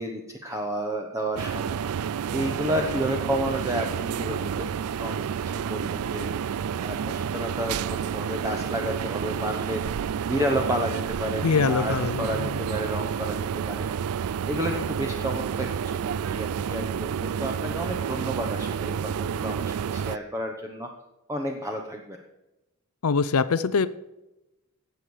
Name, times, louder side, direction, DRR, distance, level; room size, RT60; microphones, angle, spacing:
voice 1, 0.0-1.8 2.3-4.7 5.0-5.2 5.5-7.8 8.1-13.9 14.5-20.9 21.3-22.2, equal, 15° right, 2 dB, 1.0 m, -31 dB
sound 1, 1.4-20.2, right 7 dB, 75° right, 0.4 m, -30 dB
voice 2, 11.4-12.6 23.0-23.9, left 5 dB, 75° left, 14 dB, 0.5 m, -24 dB
17.5 x 7.1 x 4.9 m, 0.97 s
head